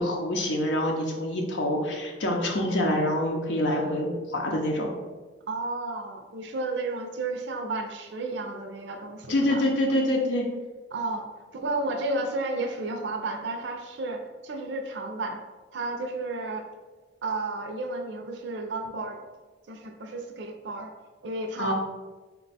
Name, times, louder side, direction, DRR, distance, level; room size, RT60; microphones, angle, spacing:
voice 1, 0.0-4.9 9.3-10.5 21.6-21.7, left 1 dB, 75° left, 0 dB, 0.6 m, -26 dB
voice 2, 5.5-9.6 10.9-11.2 11.5-15.4 15.7-16.7 17.2-19.2 19.7-20.9 21.2-21.7, right 2 dB, 70° right, 3 dB, 0.5 m, -32 dB
4.3 x 2.2 x 4.0 m, 1.3 s
head